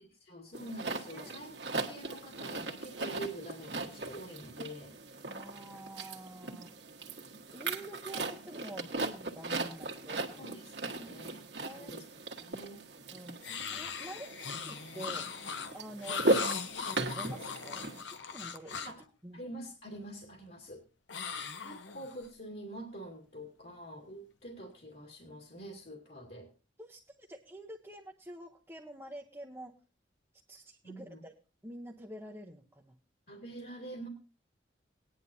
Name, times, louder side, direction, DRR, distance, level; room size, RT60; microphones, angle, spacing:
voice 1, 0.0-1.5 1.8-4.9 6.5-6.6 10.4-10.7 11.0-12.0 12.4-12.8 18.8-19.0 19.3-20.8 21.6-26.5 30.8-31.2 33.3-34.1, right 1 dB, 55° left, 0 dB, 2.4 m, -46 dB
sound 1, 0.5-18.0, right 2 dB, 60° right, 1.6 m, -38 dB
voice 2, 5.3-6.7 7.5-10.5 11.0-11.2 11.6-11.9 13.1-15.3 15.7-17.8 18.1-18.9 19.2-19.4 26.8-29.8 30.5-31.3 31.6-33.0, right 1 dB, 10° right, 0 dB, 0.8 m, -47 dB
sound 2, 13.4-19.0 21.1-22.3, left 5 dB, 70° left, 0.9 m, -39 dB
19.0 x 10.5 x 2.7 m, 0.33 s
head